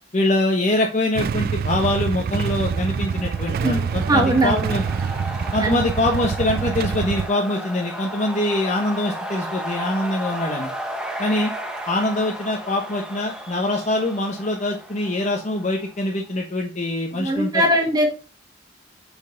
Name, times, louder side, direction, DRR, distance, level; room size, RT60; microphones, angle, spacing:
voice 1, 0.1-4.8 5.5-10.7 11.2-11.5 11.9-17.5, left 1 dB, 40° left, 0 dB, 1.1 m, -24 dB
Motorcycle / Engine starting / Idling, 1.1-7.3, right 6 dB, 55° right, 0.3 m, -26 dB
sound 1, 2.2-16.0, equal, 5° right, 1.1 m, -34 dB
voice 2, 3.6-4.7 5.6-5.8 17.1-18.1, right 1 dB, 20° right, 1 dB, 1.6 m, -20 dB
6.4 x 5.4 x 3.9 m, 0.34 s
head